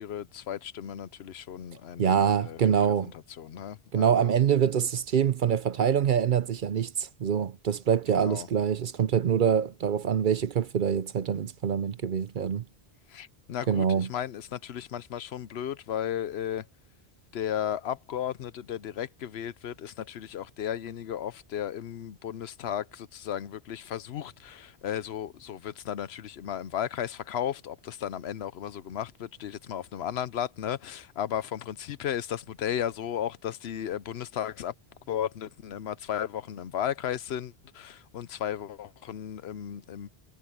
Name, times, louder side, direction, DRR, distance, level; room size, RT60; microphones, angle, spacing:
voice 1, 0.0-2.6 2.9-3.1 3.4-4.3 8.1-8.5 13.1-16.6 17.3-34.7 35.1-40.1, left 10 dB, 75° left, 0.9 m, -34 dB
voice 2, 2.0-3.1 3.9-12.6 13.7-14.1, right 8 dB, 55° right, 0.7 m, -25 dB
omnidirectional pair, 1.1 m